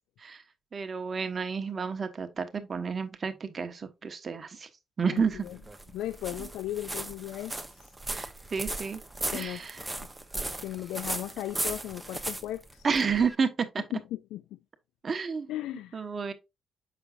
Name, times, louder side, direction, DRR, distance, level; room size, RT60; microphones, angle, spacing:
voice 1, 0.7-4.7 5.0-5.5 6.4-6.5 8.1-9.0 9.3-9.8 12.8-13.8 15.0-15.5 15.9-16.3, right 5 dB, 40° right, 1.1 m, -30 dB
voice 2, 5.1-5.6 5.9-7.9 9.3-9.8 10.3-12.9 13.9-14.6 15.5-16.0, left 13 dB, 90° left, 0.4 m, -37 dB
sound 1, 5.2-13.3, right 2 dB, 10° right, 0.9 m, -37 dB
6.9 x 6.1 x 2.5 m
cardioid pair, 90°, 0 cm